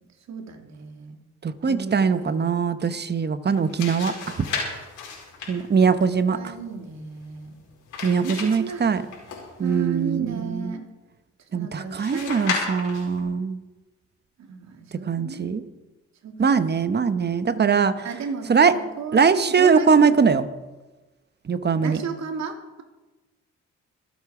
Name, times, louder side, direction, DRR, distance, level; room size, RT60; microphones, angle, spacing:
voice 1, 0.3-1.1 1.7-2.5 5.8-5.9 6.3-7.5 8.2-8.8 9.6-10.9 11.5-12.5 14.5-15.6 16.2-16.7 17.5-19.3 19.6-20.2 21.8-22.8, right 5 dB, 65° right, 3 dB, 2.6 m, -34 dB
voice 2, 1.4-4.5 5.5-6.5 8.0-9.0 9.6-10.8 11.5-13.6 15.1-15.6 16.4-18.1 18.5-18.7 19.1-20.5 21.5-22.0, right 5 dB, 35° right, 12 dB, 1.0 m, -21 dB
sound 1, 3.5-9.8 12.0-13.2, left 5 dB, 90° left, 4.8 m, -34 dB
25.0 x 8.4 x 4.9 m, 1.2 s
cardioid pair, 90°, 30 cm